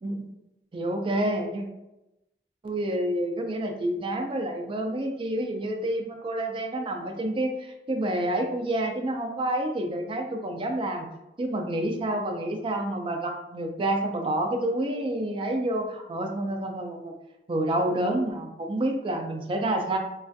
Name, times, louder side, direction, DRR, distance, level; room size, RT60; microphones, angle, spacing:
voice 1, 0.7-1.6 2.6-11.1 11.4-17.1 17.5-20.0, right 1 dB, 30° right, 4 dB, 0.4 m, -28 dB
3.2 x 2.3 x 2.6 m, 0.93 s
head